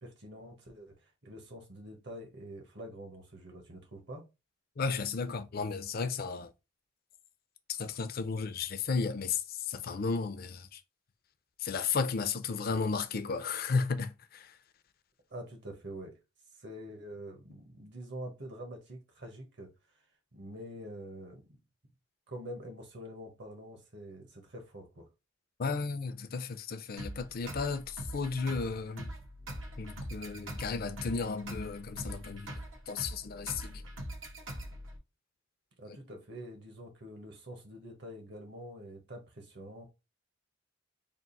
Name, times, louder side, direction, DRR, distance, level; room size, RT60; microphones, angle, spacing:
voice 1, 0.0-4.2 15.3-16.2 16.6-19.7 20.3-21.4 22.3-25.1 35.8-39.9, equal, 60° right, 1.3 m, -46 dB
voice 2, 4.8-6.5 7.7-10.8 11.6-14.6 25.6-29.1 29.8-32.6 32.9-33.8, left 4 dB, 50° left, 0.5 m, -34 dB
sound 1, 27.0-35.0, right 1 dB, 85° right, 1.2 m, -42 dB
3.6 x 2.5 x 4.0 m
head